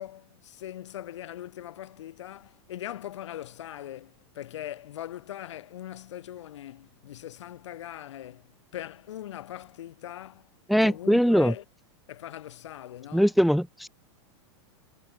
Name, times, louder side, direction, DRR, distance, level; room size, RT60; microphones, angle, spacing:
voice 1, 0.0-10.5 10.8-11.6 12.1-13.3, left 12 dB, 80° left, 7.2 m, -41 dB
voice 2, 10.7-11.5 13.1-13.9, equal, ahead, 1.0 m, -21 dB
supercardioid pair, 165°, 15 cm